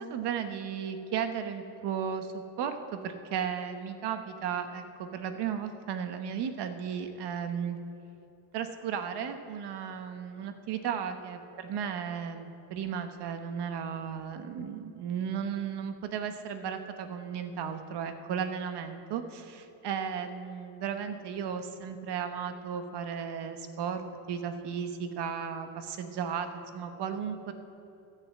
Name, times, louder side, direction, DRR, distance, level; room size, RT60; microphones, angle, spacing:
voice 1, 0.0-7.8 8.5-24.0 24.3-27.5, right 7 dB, 60° right, 8 dB, 1.1 m, -35 dB
13.5 x 6.8 x 7.5 m, 2.9 s
cardioid pair, 125°, 45 cm